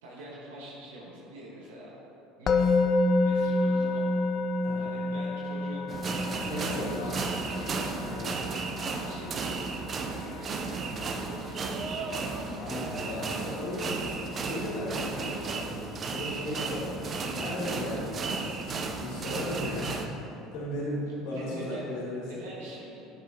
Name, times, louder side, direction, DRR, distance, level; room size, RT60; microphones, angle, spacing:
voice 1, 0.0-2.0 2.4-2.9 3.2-4.2 4.8-6.0 6.5-7.7 8.9-9.7 10.0-12.6 21.3-21.9 22.2-23.1, right 1 dB, 80° right, -5 dB, 1.5 m, -45 dB
Musical instrument, 2.5-13.6, left 2 dB, 45° left, 0.5 m, -30 dB
sound 1, 5.9-20.1, right 4 dB, 40° right, 0.7 m, -34 dB
voice 2, 6.4-7.2 8.0-8.3 12.3-22.5, left 1 dB, 65° left, -5 dB, 1.9 m, -36 dB
10.5 x 6.9 x 3.0 m, 2.8 s
hypercardioid pair, 75°, 0 cm